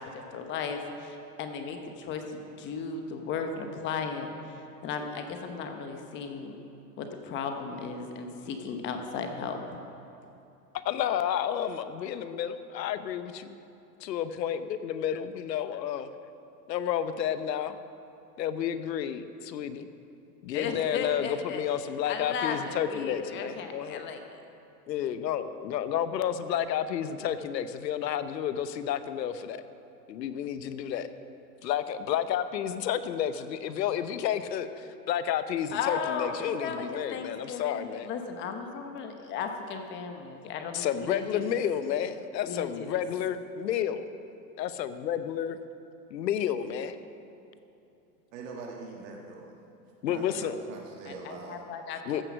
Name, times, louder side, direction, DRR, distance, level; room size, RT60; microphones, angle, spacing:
voice 1, 0.0-6.6 7.0-9.8 20.5-21.6 22.1-24.4 35.7-41.6 42.5-42.9 51.1-52.2, left 5 dB, 25° left, 5 dB, 1.0 m, -36 dB
voice 2, 10.7-13.6 14.0-16.1 16.7-17.8 18.4-19.9 20.4-24.1 24.9-29.6 30.1-31.1 31.6-38.1 40.7-44.0 44.6-45.6 46.1-47.0 50.0-50.5 52.1-52.2, left 9 dB, 85° left, 12 dB, 0.9 m, -31 dB
voice 3, 48.3-49.6 50.0-51.6, right 4 dB, 50° right, -1 dB, 1.7 m, -43 dB
14.5 x 7.7 x 6.2 m, 2.8 s
supercardioid pair, 150°, 49 cm